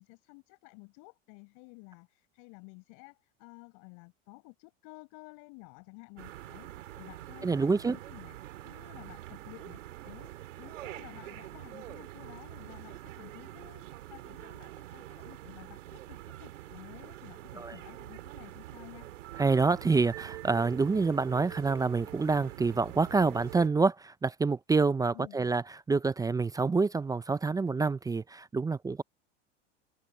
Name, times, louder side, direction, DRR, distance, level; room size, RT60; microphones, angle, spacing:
voice 1, 0.0-8.4 8.6-10.3 10.6-19.1 25.1-25.4, left 31 dB, 55° left, 6.9 m, -52 dB
sound 1, 6.2-23.7, right 14 dB, 80° right, 2.9 m, -45 dB
voice 2, 7.4-8.0 17.6-17.7 19.4-29.0, right 4 dB, 10° right, 0.5 m, -27 dB
open air
hypercardioid pair, 105°, 37 cm